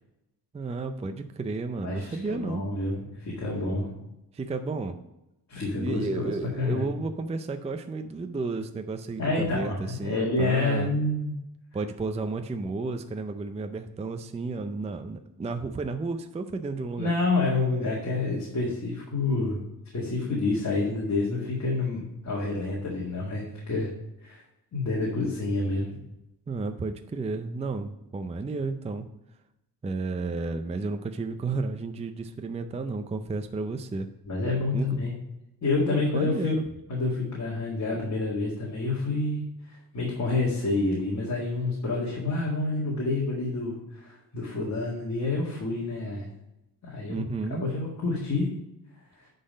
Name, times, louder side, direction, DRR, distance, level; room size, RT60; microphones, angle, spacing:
voice 1, 0.5-2.6 4.3-4.9 5.7-10.9 11.7-17.1 26.5-29.1 29.8-34.1 34.7-35.0 35.8-36.6 47.1-47.7, right 3 dB, 15° right, 7 dB, 0.4 m, -32 dB
voice 2, 1.8-3.9 5.5-6.9 9.2-11.3 17.0-19.6 19.9-23.9 24.2-24.4 24.7-26.0 34.3-35.2 35.6-36.5 36.9-46.3 46.8-47.2 47.6-48.5, left 3 dB, 45° left, -4 dB, 2.0 m, -28 dB
10.0 x 4.0 x 5.2 m, 0.89 s
wide cardioid pair, 125°, 40 cm